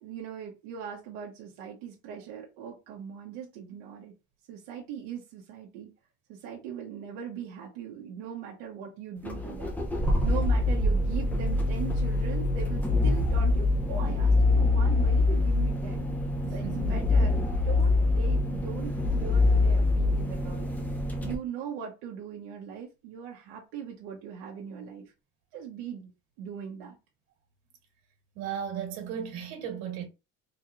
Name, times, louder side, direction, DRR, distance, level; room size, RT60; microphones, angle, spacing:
voice 1, 0.0-4.1 4.5-5.9 6.3-9.8 10.2-16.1 16.5-20.7 21.2-25.1 25.5-26.1 26.4-27.0, right 8 dB, 90° right, 1.1 m, -40 dB
sound 1, 9.2-21.3, left 2 dB, 5° left, 0.5 m, -25 dB
voice 2, 16.4-17.0 28.3-30.0, right 8 dB, 60° right, 1.7 m, -36 dB
4.0 x 3.1 x 2.4 m
cardioid pair, 175°, 30 cm